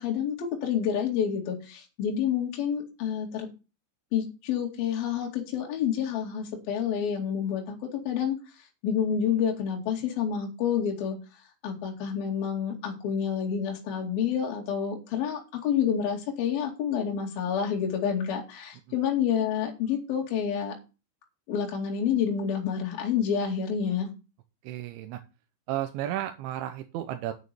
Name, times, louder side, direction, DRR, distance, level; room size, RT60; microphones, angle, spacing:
voice 1, 0.0-3.5 4.1-8.4 8.8-11.2 11.6-20.8 21.5-24.1, left 8 dB, 55° left, 0 dB, 3.9 m, -28 dB
voice 2, 24.6-25.2 25.7-27.3, right 12 dB, 80° right, 8 dB, 3.2 m, -33 dB
9.2 x 6.6 x 7.0 m, 0.30 s
omnidirectional pair, 5.6 m